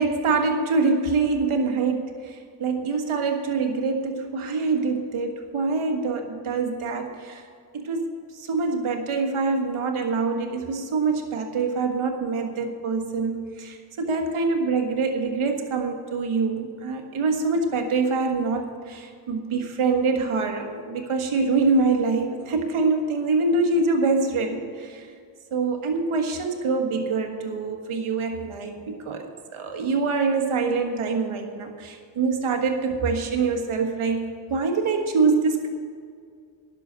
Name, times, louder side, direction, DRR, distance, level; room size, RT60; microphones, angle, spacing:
voice 1, 0.0-7.4 7.7-13.8 14.0-25.1 25.5-34.2 34.5-35.7, right 4 dB, 90° right, 3 dB, 1.6 m, -25 dB
11.0 x 6.8 x 8.5 m, 2.2 s
cardioid pair, 60°, 48 cm